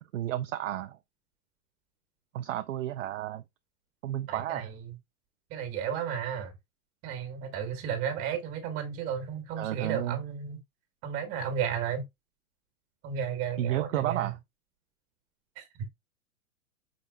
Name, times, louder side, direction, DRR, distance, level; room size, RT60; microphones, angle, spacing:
voice 1, 0.1-1.0 2.3-3.4 4.0-4.7 9.6-10.2 13.6-14.4, right 12 dB, 65° right, 0.5 m, -32 dB
voice 2, 4.3-5.0 5.5-6.5 7.0-10.6 11.0-12.1 13.0-14.3 15.5-15.9, right 8 dB, 30° right, 1.6 m, -33 dB
5.1 x 4.3 x 2.3 m
figure-of-eight pair, 105°, 42 cm